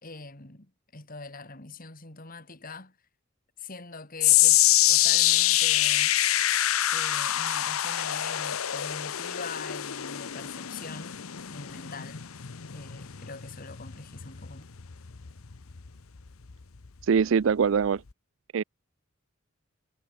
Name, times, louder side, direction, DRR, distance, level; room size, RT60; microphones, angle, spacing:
voice 1, 0.0-3.0 3.6-6.1 6.9-11.2 11.5-12.2 12.7-14.6, left 3 dB, 40° left, 3.2 m, -43 dB
sound 1, 4.2-16.5 16.8-17.2 17.8-17.9, left 14 dB, 90° left, 0.9 m, -26 dB
voice 2, 17.0-18.0 18.5-18.6, right 6 dB, 65° right, 0.4 m, -23 dB
head